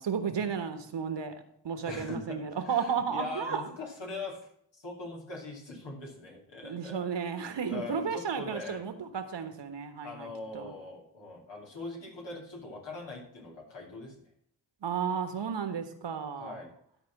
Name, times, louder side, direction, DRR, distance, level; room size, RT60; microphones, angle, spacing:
voice 1, 0.0-1.3 1.6-3.6 6.6-10.3 10.5-10.7 14.8-16.6, right 6 dB, 75° right, 9 dB, 1.4 m, -33 dB
voice 2, 1.9-4.4 4.7-7.0 7.7-8.8 10.0-14.1 16.3-16.7, left 3 dB, 85° left, -1 dB, 2.8 m, -42 dB
12.5 x 4.3 x 7.1 m, 0.67 s
cardioid pair, 40°, 43 cm